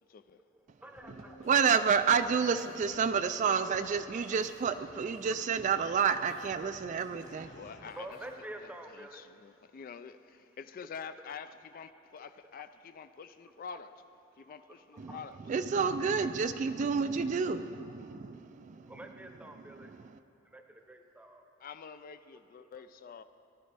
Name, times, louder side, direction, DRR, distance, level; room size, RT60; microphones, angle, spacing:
voice 1, 0.4-1.5 3.4-3.7 4.1-4.7 4.9-5.3 6.6-6.8 7.5-9.4 9.7-9.8 10.1-10.6 11.0-11.3 11.7-14.0 14.3-15.5 15.8-16.1 17.8-20.0 20.4-21.5 22.5-22.7, right 1 dB, 5° right, 4 dB, 0.8 m, -51 dB
sound 1, 1.0-8.3, left 1 dB, 90° left, 1.9 m, -55 dB
voice 2, 1.4-7.8 15.0-15.2 15.5-18.9, right 6 dB, 40° right, 10 dB, 0.3 m, -29 dB
voice 3, 7.5-8.1 9.0-13.9 14.4-15.3 21.6-23.2, left 6 dB, 45° left, 11 dB, 0.3 m, -46 dB
17.5 x 11.5 x 3.4 m, 2.6 s
head